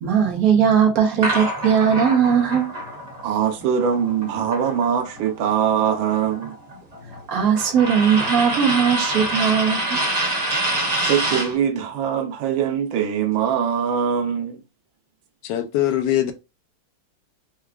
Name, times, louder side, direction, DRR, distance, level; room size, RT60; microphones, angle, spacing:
voice 1, 0.0-2.7 7.3-10.0, right 7 dB, 60° right, 1.1 m, -19 dB
sound 1, 1.2-5.3 5.6-11.6, right 1 dB, 30° right, 0.8 m, -26 dB
voice 2, 3.2-6.5 11.0-14.6, right 8 dB, 90° right, 1.5 m, -22 dB
voice 3, 15.4-16.3, left 12 dB, 75° left, 1.1 m, -22 dB
4.7 x 2.3 x 2.2 m
omnidirectional pair, 2.1 m